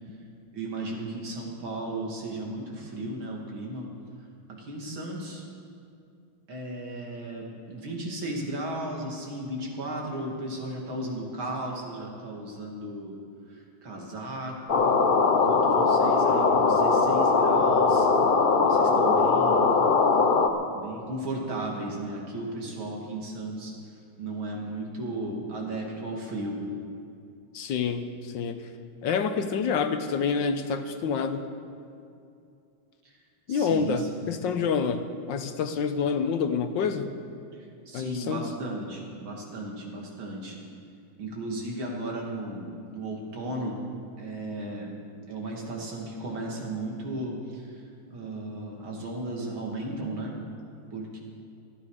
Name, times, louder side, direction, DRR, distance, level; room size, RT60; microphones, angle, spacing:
voice 1, 0.5-3.9 4.6-5.4 6.5-13.1 13.5-14.9 15.3-18.1 18.6-19.9 20.7-23.7 24.2-26.6 33.0-33.1 33.5-34.3 37.5-40.6 41.2-43.8 44.2-44.9 45.3-47.8 48.1-50.3 50.9-51.2, right 1 dB, 75° right, -1 dB, 3.2 m, -35 dB
sound 1, 14.7-20.5, left 4 dB, 50° left, 0.6 m, -21 dB
voice 2, 27.5-28.7 29.0-31.4 33.5-37.1 37.9-38.4, left 6 dB, 70° left, 8 dB, 1.5 m, -27 dB
19.0 x 13.5 x 5.0 m, 2.5 s
omnidirectional pair, 2.2 m